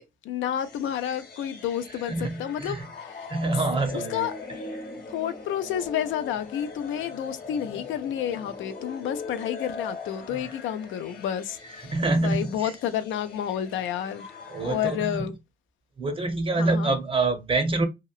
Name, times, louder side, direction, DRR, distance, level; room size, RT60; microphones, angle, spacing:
voice 1, 0.0-3.3 3.8-4.3 5.1-14.3 14.6-15.3 16.6-16.9, left 10 dB, 75° left, 0.4 m, -30 dB
sound 1, 0.6-15.0, left 4 dB, 50° left, 1.0 m, -40 dB
voice 2, 2.1-2.8 3.3-4.3 10.3-10.5 11.9-12.7 14.5-15.3 16.0-17.9, right 3 dB, 25° right, 0.6 m, -26 dB
2.8 x 2.0 x 2.3 m
cardioid pair, 90°, 20 cm